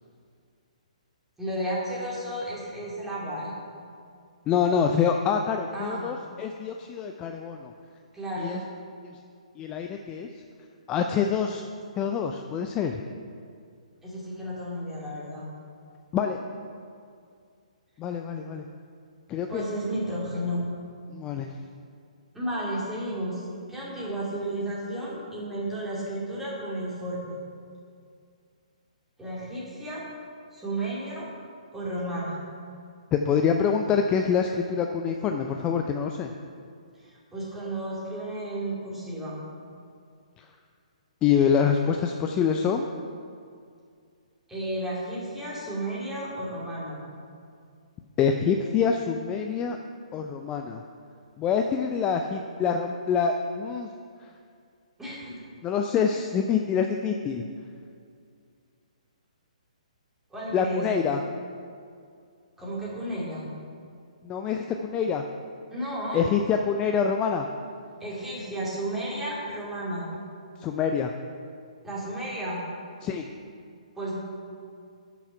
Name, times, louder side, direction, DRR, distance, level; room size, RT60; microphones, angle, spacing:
voice 1, 1.4-3.5 5.7-6.0 8.1-8.6 14.0-15.4 19.5-20.6 22.3-27.4 29.2-30.0 30.5-31.3 31.7-32.4 37.0-39.4 44.5-47.0 55.0-55.4 60.3-60.8 62.6-63.5 65.7-66.2 68.0-70.1 71.8-72.6 74.0-74.2, right 1 dB, 5° right, -7 dB, 2.7 m, -33 dB
voice 2, 4.5-7.7 8.4-8.6 9.6-10.3 10.9-11.6 12.0-13.0 16.1-16.4 18.0-18.6 19.3-19.6 21.1-21.5 33.1-36.3 41.2-42.8 48.2-49.8 50.1-50.8 51.4-53.9 55.6-57.4 60.5-61.2 64.2-65.2 66.1-67.5 70.6-71.1 73.0-73.2, left 7 dB, 20° left, 4 dB, 0.4 m, -26 dB
9.9 x 6.2 x 5.6 m, 2.3 s
figure-of-eight pair, 130°, 4 cm